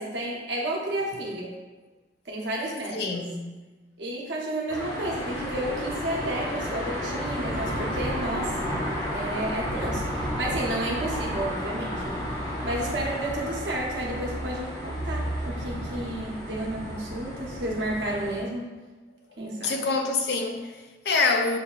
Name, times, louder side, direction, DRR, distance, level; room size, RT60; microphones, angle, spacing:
voice 1, 0.0-1.5 2.2-3.2 4.0-8.8 9.1-12.3 12.6-18.7 19.4-19.7, right 1 dB, 85° right, -3 dB, 1.0 m, -31 dB
voice 2, 2.9-3.4 19.6-21.6, left 3 dB, 65° left, 4 dB, 0.5 m, -26 dB
sound 1, 4.7-18.4, equal, 25° left, 1.0 m, -32 dB
6.5 x 2.7 x 2.4 m, 1.2 s
head